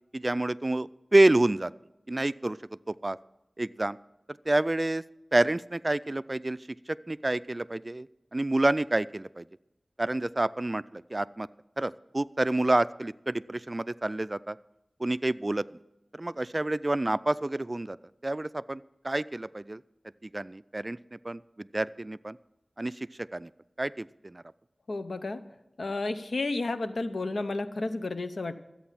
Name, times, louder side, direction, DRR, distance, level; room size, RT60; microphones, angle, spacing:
voice 1, 0.1-1.7 2.1-2.6 2.9-3.2 3.6-4.0 4.3-5.0 5.3-6.6 6.9-9.5 10.0-11.5 11.8-14.6 15.0-15.6 16.1-18.0 18.2-19.8 20.2-21.0 21.2-22.4 22.8-23.5 23.8-24.4, right 2 dB, 40° right, 17 dB, 0.3 m, -28 dB
voice 2, 24.9-25.4 25.8-28.5, left 2 dB, 90° left, 10 dB, 0.7 m, -31 dB
13.5 x 8.6 x 5.7 m, 0.94 s
wide cardioid pair, 45°, 0 cm